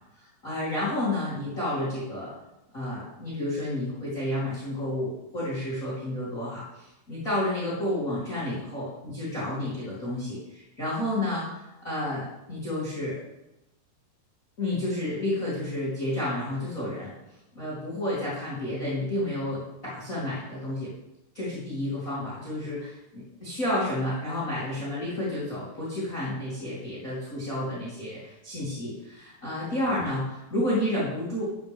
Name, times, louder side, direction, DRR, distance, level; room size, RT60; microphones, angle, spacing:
voice 1, 0.2-2.3 2.7-13.2 14.6-17.1 17.5-20.9 21.3-31.4, left 1 dB, 25° left, -8 dB, 2.5 m, -31 dB
12.5 x 7.5 x 3.5 m, 0.92 s
omnidirectional pair, 4.6 m